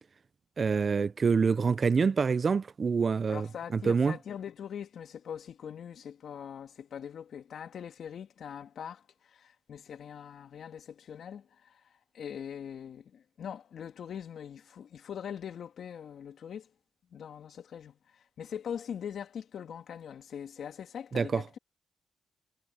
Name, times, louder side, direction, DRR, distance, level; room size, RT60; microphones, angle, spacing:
voice 1, 0.6-3.5 3.7-4.2 21.1-21.4, right 5 dB, 45° right, 0.7 m, -26 dB
voice 2, 3.3-11.9 12.1-16.7 17.1-21.6, left 8 dB, 70° left, 1.9 m, -42 dB
supercardioid pair, 55°, 0 cm